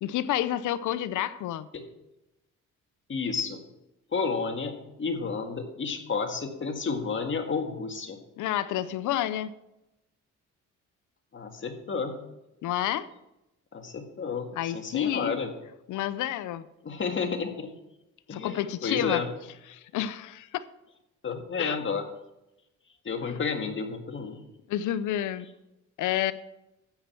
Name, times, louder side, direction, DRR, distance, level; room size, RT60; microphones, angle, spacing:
voice 1, 0.0-1.7 8.4-9.5 12.6-13.1 14.5-15.3 15.9-16.7 18.3-19.2 19.7-20.6 21.6-21.8 23.2-23.4 24.7-25.5 26.0-26.3, left 12 dB, 80° left, 15 dB, 0.7 m, -29 dB
voice 2, 3.1-3.6 4.1-8.2 11.3-12.2 13.7-15.5 16.8-17.7 18.3-19.3 21.2-22.0 23.1-24.4, left 5 dB, 40° left, 5 dB, 1.9 m, -31 dB
12.5 x 9.0 x 4.5 m, 0.90 s
cardioid pair, 90°, 30 cm